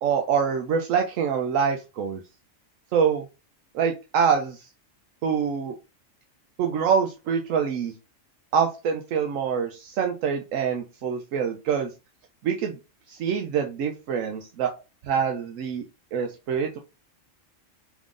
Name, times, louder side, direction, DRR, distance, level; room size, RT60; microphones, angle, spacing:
voice 1, 0.0-2.2 2.9-3.3 3.7-4.7 5.2-5.7 6.6-7.9 8.5-11.9 12.4-12.8 13.1-14.7 15.0-15.8 16.1-16.8, right 7 dB, 80° right, 3 dB, 1.0 m, -25 dB
3.5 x 3.1 x 3.7 m, 0.28 s
omnidirectional pair, 1.3 m